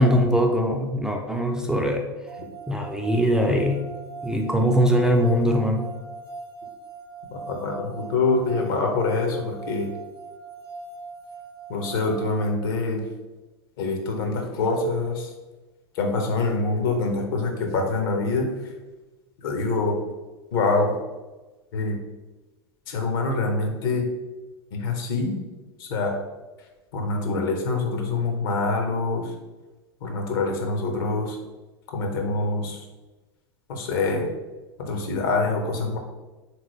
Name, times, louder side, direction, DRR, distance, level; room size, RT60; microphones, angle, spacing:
voice 1, 0.0-2.1 2.7-3.9 4.2-5.9, equal, 5° right, 1 dB, 0.3 m, -21 dB
sound 1, 2.3-12.5, right 4 dB, 75° right, 0.5 m, -41 dB
voice 2, 7.3-9.9 11.7-13.0 13.8-15.3 16.0-18.5 19.4-20.0 20.5-21.0 21.7-22.0 22.9-24.1 24.7-25.3 25.8-26.1 26.9-29.3 30.0-31.4 31.9-32.8 33.7-34.3 34.8-36.0, left 3 dB, 60° left, 2 dB, 0.8 m, -25 dB
3.7 x 3.0 x 3.1 m, 1.2 s
figure-of-eight pair, 90°, 13 cm